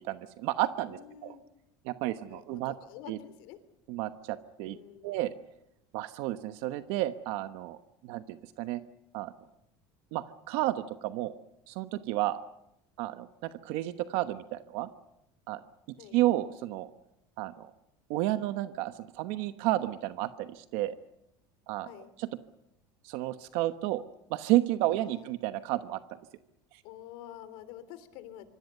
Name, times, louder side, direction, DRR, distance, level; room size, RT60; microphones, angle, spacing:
voice 1, 0.0-1.3 1.8-2.7 3.1-3.2 3.9-4.8 5.0-5.3 5.9-7.8 8.0-8.8 9.1-9.3 10.1-11.4 11.7-12.4 13.0-14.9 15.5-15.6 16.1-16.9 17.4-17.7 18.1-20.9 21.7-21.9 22.2-22.3 23.0-24.0 24.3-26.0, right 15 dB, 65° right, 10 dB, 1.1 m, -31 dB
voice 2, 0.9-1.4 2.3-3.6 4.6-5.1 16.0-16.2 21.8-22.1 25.0-25.3 26.8-28.5, left 11 dB, 65° left, 13 dB, 3.2 m, -48 dB
25.5 x 25.0 x 6.7 m, 0.83 s
cardioid pair, 150°, 10 cm